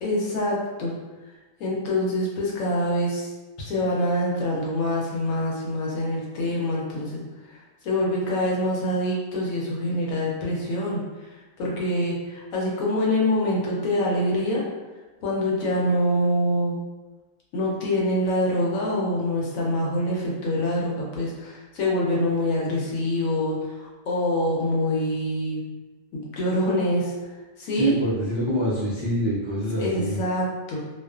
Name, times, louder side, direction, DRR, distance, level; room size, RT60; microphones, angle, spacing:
voice 1, 0.0-0.9 1.6-3.3 3.6-7.2 7.5-11.0 11.6-14.6 15.2-16.8 17.5-25.6 26.1-27.1 27.6-27.9 29.8-30.8, left 1 dB, 75° left, -4 dB, 1.0 m, -25 dB
voice 2, 27.7-30.2, right 1 dB, 50° right, -10 dB, 0.3 m, -25 dB
2.4 x 2.3 x 2.3 m, 1.2 s
omnidirectional pair, 1.4 m